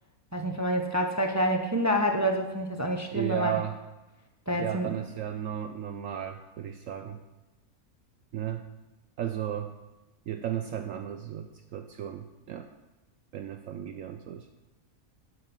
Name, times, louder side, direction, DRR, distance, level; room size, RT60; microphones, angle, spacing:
voice 1, 0.3-3.6 4.5-5.0, equal, 25° right, 4 dB, 0.4 m, -27 dB
voice 2, 3.1-3.8 4.6-7.2 8.3-8.7 9.2-9.7 10.3-12.7 13.3-14.5, right 10 dB, 70° right, 7 dB, 0.9 m, -34 dB
12.0 x 5.5 x 5.7 m, 1.0 s
omnidirectional pair, 1.6 m